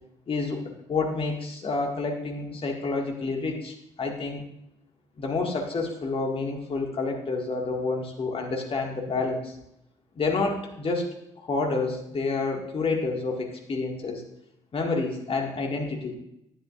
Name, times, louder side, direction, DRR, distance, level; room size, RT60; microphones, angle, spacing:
voice 1, 0.3-0.6 0.9-4.4 5.2-9.5 10.2-11.1 11.4-14.2 14.7-16.2, left 3 dB, 40° left, 1 dB, 1.9 m, -29 dB
11.5 x 9.7 x 2.5 m, 0.80 s
figure-of-eight pair, 40°, 14 cm